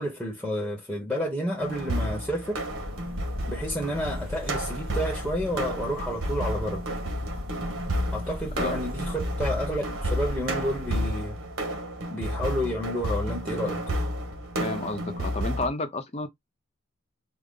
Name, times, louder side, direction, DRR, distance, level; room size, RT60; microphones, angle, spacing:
voice 1, 0.0-2.6 3.5-6.8 8.1-11.4 12.1-13.8, equal, ahead, 0.9 m, -30 dB
sound 1, 1.6-15.7, equal, 90° right, 1.2 m, -31 dB
sound 2, 2.7-11.1, left 1 dB, 45° right, 2.1 m, -38 dB
voice 2, 14.6-16.3, left 2 dB, 30° left, 0.7 m, -31 dB
3.8 x 2.1 x 3.6 m
head